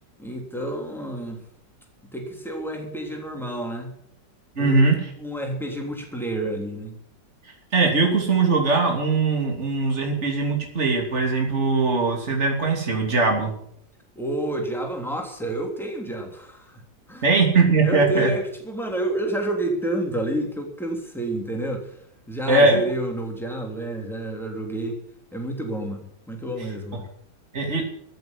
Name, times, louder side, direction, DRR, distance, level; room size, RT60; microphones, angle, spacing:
voice 1, 0.2-1.4 2.1-3.9 4.6-4.8 5.2-6.9 14.1-16.8 17.1-17.3 17.8-22.0 22.3-24.9 25.3-27.1, right 1 dB, ahead, 2 dB, 3.2 m, -29 dB
voice 2, 4.6-4.9 7.7-13.6 17.2-18.3 22.5-22.8 27.5-27.8, right 3 dB, 40° right, 1 dB, 3.2 m, -20 dB
15.0 x 7.8 x 10.0 m, 0.69 s
omnidirectional pair, 1.9 m